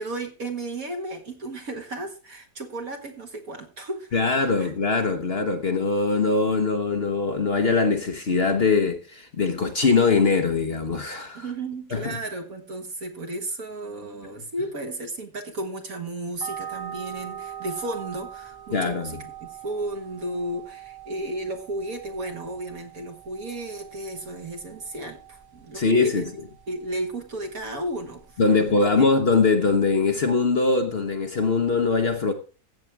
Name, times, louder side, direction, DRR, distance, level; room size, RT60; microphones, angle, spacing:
voice 1, 0.0-4.2 4.6-4.7 5.4-5.5 11.3-26.3 26.7-29.1, right 1 dB, 60° right, 2.1 m, -34 dB
voice 2, 4.1-11.5 11.9-12.2 18.7-19.2 25.7-26.3 28.4-32.3, left 4 dB, 45° left, 1.0 m, -22 dB
sound 1, 16.4-28.7, right 9 dB, 35° right, 0.4 m, -42 dB
15.5 x 7.3 x 3.4 m
omnidirectional pair, 1.7 m